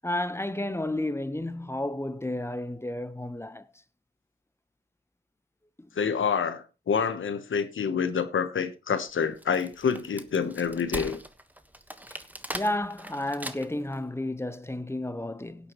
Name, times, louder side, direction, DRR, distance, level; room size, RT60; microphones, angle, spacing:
voice 1, 0.0-3.7 5.8-5.9 12.1-12.2 12.5-15.7, left 1 dB, 15° left, 1.0 m, -32 dB
voice 2, 6.0-11.2, left 6 dB, 80° left, 1.1 m, -27 dB
Wood, 9.2-13.9, right 1 dB, 10° right, 1.3 m, -40 dB
16.5 x 8.4 x 3.1 m
cardioid pair, 40°, 20 cm